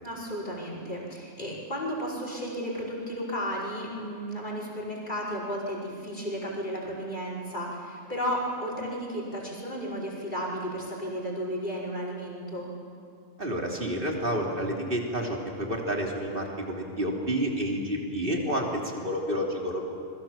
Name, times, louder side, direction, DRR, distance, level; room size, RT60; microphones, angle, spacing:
voice 1, 0.0-12.7, equal, 35° left, -3 dB, 5.7 m, -33 dB
voice 2, 13.4-19.8, equal, 40° right, 0 dB, 3.5 m, -29 dB
27.5 x 22.0 x 7.5 m, 2.3 s
omnidirectional pair, 1.4 m